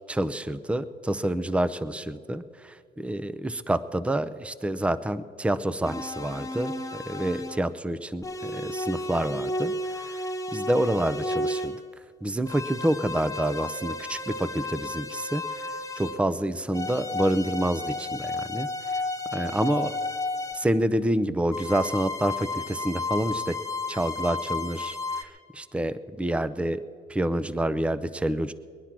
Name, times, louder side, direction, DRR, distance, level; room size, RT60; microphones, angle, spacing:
voice 1, 0.1-6.7 7.1-10.3 10.5-11.8 12.2-15.7 16.0-18.7 19.3-20.0 20.5-23.6 23.9-26.8 27.1-28.5, right 1 dB, 5° right, 15 dB, 0.5 m, -28 dB
sound 1, 5.8-7.7 8.2-11.8 12.4-16.3 16.7-20.7 21.5-25.2, left 2 dB, 15° left, 1.1 m, -33 dB
21.5 x 9.9 x 6.0 m, 2.2 s
cardioid pair, 95°, 19 cm